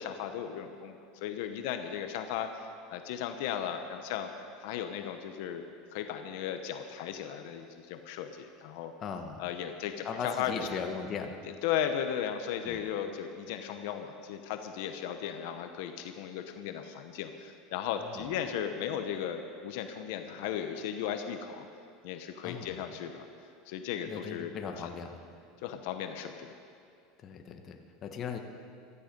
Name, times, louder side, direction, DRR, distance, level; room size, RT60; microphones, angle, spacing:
voice 1, 0.0-2.5 2.9-4.3 4.6-5.6 5.9-8.9 9.4-10.6 11.6-21.7 22.0-23.3 23.7-24.7 25.6-26.5, left 9 dB, 70° left, 7 dB, 1.0 m, -36 dB
voice 2, 9.0-9.4 10.0-11.4 12.6-12.8 18.0-18.3 22.4-22.9 24.1-25.2 27.2-28.4, left 6 dB, 35° left, 5 dB, 1.2 m, -38 dB
15.5 x 13.5 x 5.4 m, 2.4 s
supercardioid pair, 140°, 0 cm